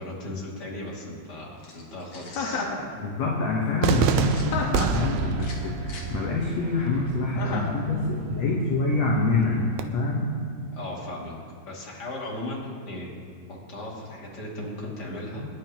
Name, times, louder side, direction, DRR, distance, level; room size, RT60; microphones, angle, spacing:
voice 1, 0.0-2.7 10.7-11.3 11.6-13.1 13.7-15.4, left 1 dB, 30° left, -4 dB, 2.6 m, -36 dB
sound 1, 1.6-2.5 3.8-4.5 5.3-6.1, left 3 dB, 45° left, 2.1 m, -45 dB
Chuckle chortle, 2.3-2.8 4.5-5.1 7.4-7.8, left 4 dB, 80° left, 3.3 m, -30 dB
voice 2, 3.0-10.3, left 3 dB, 60° left, -2 dB, 2.0 m, -26 dB
Cheering / Fireworks, 3.8-9.8, right 6 dB, 90° right, 2.6 m, -29 dB
25.0 x 11.0 x 3.1 m, 2.1 s
omnidirectional pair, 4.4 m